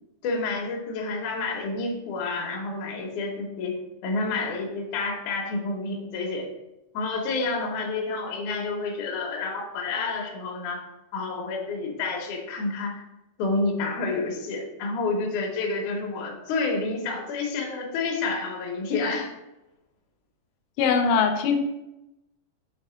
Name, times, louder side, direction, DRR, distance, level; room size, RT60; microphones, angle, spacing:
voice 1, 0.2-6.5 6.9-10.8 11.1-13.0 13.4-19.3, left 3 dB, 70° left, 1 dB, 2.0 m, -29 dB
voice 2, 20.8-21.6, left 6 dB, 85° left, 5 dB, 2.5 m, -21 dB
6.5 x 3.3 x 4.9 m, 0.92 s
omnidirectional pair, 4.5 m